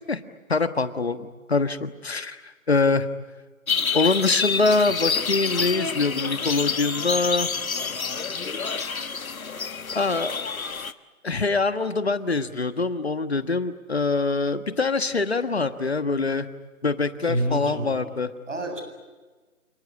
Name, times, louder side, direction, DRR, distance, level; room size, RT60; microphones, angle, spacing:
voice 1, 0.5-3.1 3.9-7.5 9.9-10.4 11.2-16.5 16.8-18.3, left 3 dB, 45° left, 11 dB, 1.4 m, -24 dB
sound 1, 3.7-10.9, left 5 dB, 75° left, 1.3 m, -28 dB
voice 2, 17.2-18.1 18.5-18.8, right 1 dB, 60° right, 5 dB, 7.6 m, -28 dB
28.5 x 19.5 x 9.6 m, 1.3 s
figure-of-eight pair, 180°, 42 cm